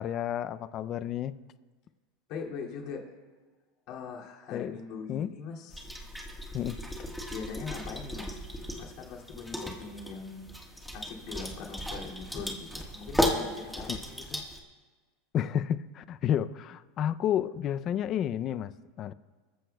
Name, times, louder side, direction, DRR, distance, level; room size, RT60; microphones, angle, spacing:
voice 1, 0.0-1.4 4.5-4.8 5.1-5.3 6.5-6.8 13.9-14.0 15.3-19.1, left 10 dB, 35° left, 15 dB, 0.5 m, -31 dB
voice 2, 2.3-3.1 3.9-5.9 7.3-8.4 8.7-10.4 10.9-14.4, left 5 dB, 50° left, -1 dB, 2.5 m, -41 dB
sound 1, 5.7-14.6, equal, ahead, 1.5 m, -35 dB
23.5 x 14.0 x 2.3 m, 1.4 s
supercardioid pair, 145°, 0 cm